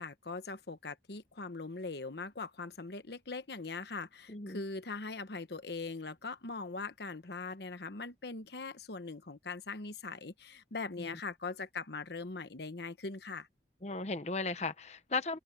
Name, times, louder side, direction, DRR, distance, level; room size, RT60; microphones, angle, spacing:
voice 1, 0.0-13.5, left 3 dB, 70° left, 1.1 m, -41 dB
voice 2, 4.3-4.6 11.0-11.1 13.8-15.4, left 3 dB, 40° left, 0.9 m, -36 dB
head